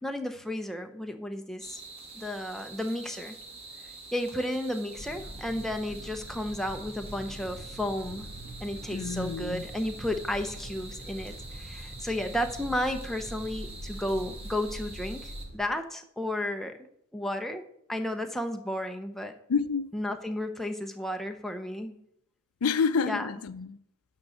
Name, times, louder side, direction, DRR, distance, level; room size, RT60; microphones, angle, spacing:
voice 1, 0.0-1.8 2.2-3.3 4.1-8.3 8.6-16.8 17.1-19.3 19.9-22.0 23.0-23.3, left 1 dB, ahead, 0.6 m, -33 dB
sound 1, 1.6-15.5, right 3 dB, 25° right, 1.5 m, -46 dB
sound 2, 5.0-15.6, equal, 45° right, 1.5 m, -43 dB
voice 2, 8.9-9.7 19.5-19.9 22.6-23.8, left 5 dB, 80° left, 0.5 m, -28 dB
11.5 x 3.8 x 7.2 m
head